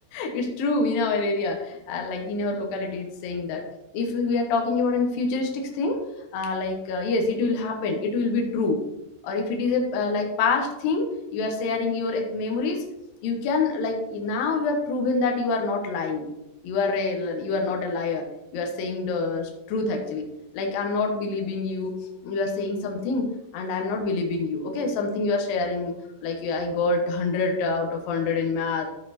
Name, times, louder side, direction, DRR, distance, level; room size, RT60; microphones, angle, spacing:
voice 1, 0.1-3.6 3.9-6.0 6.3-8.8 9.2-12.8 13.2-16.2 16.6-18.2 18.5-20.2 20.5-22.0 22.2-25.9 26.2-28.9, left 3 dB, 65° left, 2 dB, 2.6 m, -26 dB
13.0 x 4.4 x 4.3 m, 0.89 s
omnidirectional pair, 5.0 m